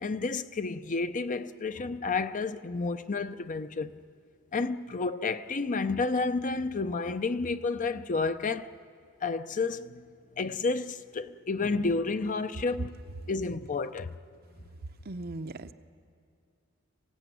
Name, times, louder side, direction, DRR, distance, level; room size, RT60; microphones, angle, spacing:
voice 1, 0.0-4.0 4.5-8.7 9.2-10.0 10.4-13.0 13.3-14.1, left 3 dB, 35° left, 0.6 m, -31 dB
voice 2, 15.1-15.7, right 2 dB, 45° right, 0.7 m, -38 dB
26.5 x 16.0 x 9.2 m
head